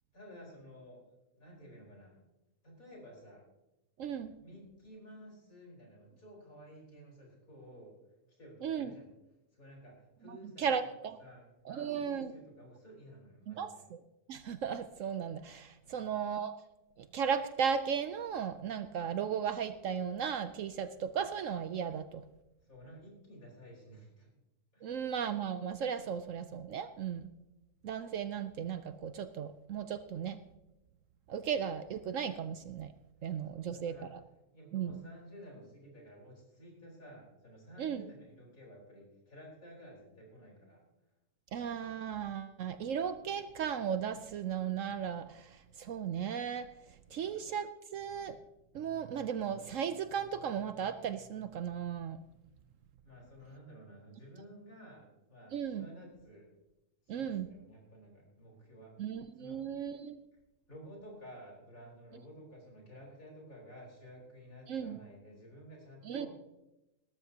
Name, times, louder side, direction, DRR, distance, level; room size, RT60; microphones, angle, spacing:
voice 1, 0.1-2.2 2.6-3.4 4.4-7.9 8.4-9.1 9.5-10.9 11.2-13.8 15.8-16.1 22.6-24.3 24.7-25.0 33.5-34.1 34.5-40.8 47.1-47.3 53.0-56.5 57.1-59.7 60.7-66.3, equal, 60° left, -2 dB, 4.9 m, -53 dB
voice 2, 4.0-4.3 8.6-8.9 10.3-11.2 11.7-12.3 13.5-14.0 14.3-16.5 17.0-22.2 24.8-27.3 27.8-30.4 31.3-32.9 33.2-34.2 34.7-35.0 37.8-38.0 41.5-46.7 47.1-48.4 48.7-52.2 55.5-55.9 57.1-57.5 59.0-60.2 64.7-65.0 66.0-66.3, right 7 dB, 65° right, 11 dB, 0.9 m, -36 dB
19.0 x 13.0 x 2.8 m, 0.94 s
omnidirectional pair, 1.6 m